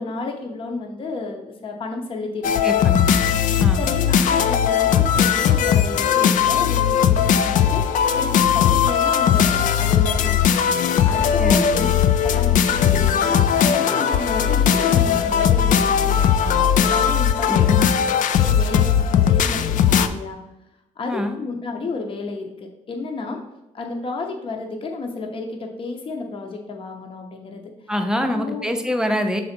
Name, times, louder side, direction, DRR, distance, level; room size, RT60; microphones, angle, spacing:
voice 1, 0.0-3.0 3.8-10.5 11.0-11.9 12.2-17.5 18.4-20.4 21.0-23.4 23.7-27.6 28.2-28.7, left 3 dB, 40° left, 2 dB, 0.8 m, -32 dB
sound 1, 2.4-20.1, left 8 dB, 70° left, 0.4 m, -18 dB
voice 2, 2.6-3.2 3.6-3.9 11.4-11.9 17.5-17.9 21.1-21.4 27.9-29.4, equal, 5° right, 5 dB, 0.6 m, -25 dB
6.3 x 3.9 x 4.3 m, 0.94 s
cardioid pair, 125°, 14 cm